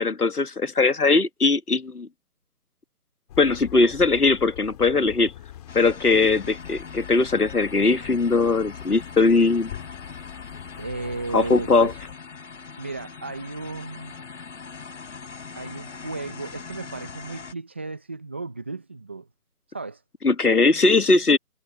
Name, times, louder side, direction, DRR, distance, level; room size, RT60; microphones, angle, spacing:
voice 1, 0.0-2.1 3.4-5.3 5.8-9.7 11.3-11.9 20.2-21.4, left 3 dB, 80° left, 2.0 m, -20 dB
sound 1, 3.3-12.1, left 12 dB, 25° left, 3.4 m, -43 dB
sound 2, 5.7-17.5, left 5 dB, 55° left, 4.0 m, -41 dB
voice 2, 10.8-12.0 12.8-14.1 15.5-19.3 19.7-20.0, right 3 dB, 10° right, 0.7 m, -35 dB
figure-of-eight pair, 150°, 45 cm